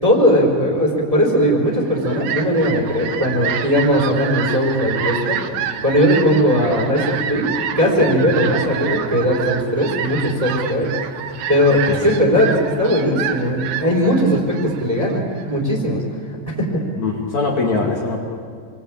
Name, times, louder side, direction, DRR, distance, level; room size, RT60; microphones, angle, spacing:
voice 1, 0.0-5.4 5.8-7.5 7.8-10.9 11.5-15.2 15.5-16.0 16.5-16.8, equal, 10° right, -1 dB, 3.8 m, -18 dB
Fowl, 1.7-15.6, right 8 dB, 70° right, 2.1 m, -28 dB
voice 2, 11.7-12.2 17.0-18.2, left 3 dB, 45° left, -3 dB, 3.1 m, -22 dB
28.5 x 22.5 x 9.0 m, 2.1 s
omnidirectional pair, 5.1 m